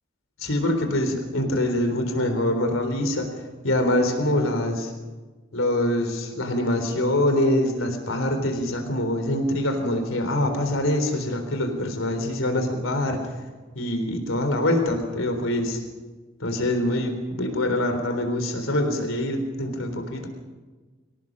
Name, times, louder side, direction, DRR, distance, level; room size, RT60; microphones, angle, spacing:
voice 1, 0.4-3.3 3.6-4.9 5.5-13.2 13.8-15.8 16.4-20.3, left 1 dB, 90° left, 6 dB, 3.8 m, -24 dB
25.0 x 18.0 x 6.3 m, 1.3 s
head